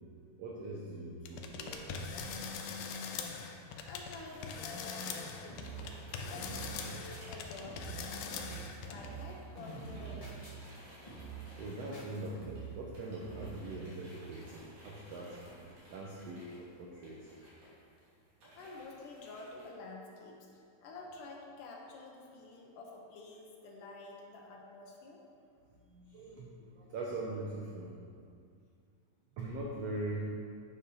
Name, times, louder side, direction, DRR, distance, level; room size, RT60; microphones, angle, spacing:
voice 1, 0.4-2.6 7.9-8.0 8.4-8.5 8.8-8.9 11.6-15.4 15.9-17.3 18.4-18.6 23.9-24.0 25.7-28.0 29.3-30.4, right 2 dB, 75° right, -3 dB, 1.4 m, -42 dB
sound 1, 1.3-4.2 4.4-9.1, left 5 dB, 85° left, 2.5 m, -42 dB
sound 2, 1.6-8.5 8.8-19.7, equal, 50° right, 3.9 m, -57 dB
voice 2, 3.8-8.5 8.9-10.5 18.6-25.2, left 3 dB, 70° left, 0 dB, 2.4 m, -49 dB
sound 3, 5.1-5.2 5.5-5.9 6.1-7.3 7.6-8.0 8.3-9.3 9.6-10.8 11.1-11.4 11.9-12.7 13.2-13.5, right 5 dB, 15° left, 1.5 m, -46 dB
9.9 x 7.1 x 5.5 m, 2.3 s
omnidirectional pair, 4.2 m